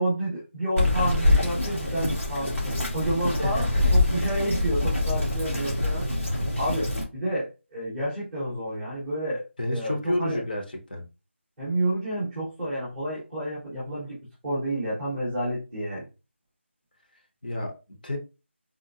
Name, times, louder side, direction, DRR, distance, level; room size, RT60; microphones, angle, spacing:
voice 1, 0.0-3.6 3.9-9.4 9.7-10.4 11.6-14.2 14.4-16.0, right 1 dB, 5° right, 0.7 m, -30 dB
Bird vocalization bird call bird song, 0.8-7.0, left 2 dB, 85° left, 1.6 m, -25 dB
voice 2, 3.4-3.9 9.6-11.0 17.4-17.8 18.0-18.2, left 1 dB, 45° left, 0.8 m, -30 dB
3.7 x 2.0 x 2.6 m
figure-of-eight pair, 175°, 7 cm